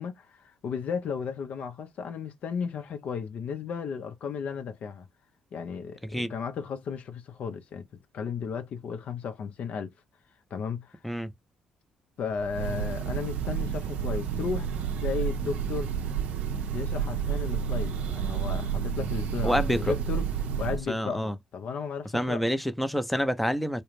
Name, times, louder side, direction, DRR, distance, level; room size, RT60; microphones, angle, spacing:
voice 1, 0.0-5.1 5.5-7.9 8.1-9.9 10.5-11.0 12.2-14.7 15.0-15.9 16.7-20.3 20.6-22.5, left 6 dB, 60° left, 0.6 m, -34 dB
Breathing / Bird, 12.4-20.9, right 7 dB, 65° right, 0.5 m, -30 dB
voice 2, 19.4-19.9 20.9-21.3 22.1-23.8, equal, 5° left, 0.6 m, -27 dB
2.4 x 2.1 x 3.1 m
hypercardioid pair, 50°, 3 cm